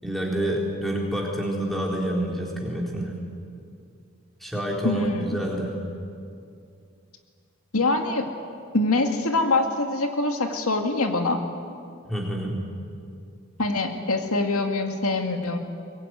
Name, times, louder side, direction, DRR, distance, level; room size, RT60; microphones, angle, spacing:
voice 1, 0.0-3.1 4.4-5.8 12.1-12.6, right 1 dB, ahead, -2 dB, 3.9 m, -28 dB
voice 2, 4.8-5.4 7.7-8.3 8.7-11.4 13.6-15.6, left 2 dB, 85° left, 5 dB, 2.2 m, -24 dB
23.0 x 21.5 x 9.6 m, 2.4 s
head